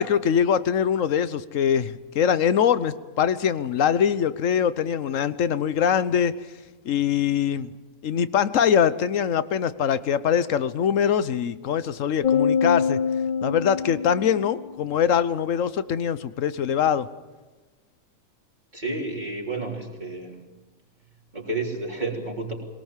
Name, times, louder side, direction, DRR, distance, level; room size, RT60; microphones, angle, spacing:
voice 1, 0.0-6.3 6.8-7.7 8.0-13.0 13.4-17.1, left 8 dB, 70° left, 14 dB, 1.2 m, -23 dB
sound 1, 12.2-14.8, left 6 dB, 40° left, 0.9 m, -25 dB
voice 2, 18.7-20.4 21.3-22.5, right 2 dB, 35° right, -1 dB, 3.8 m, -31 dB
22.0 x 19.5 x 7.4 m, 1.2 s
omnidirectional pair, 1.4 m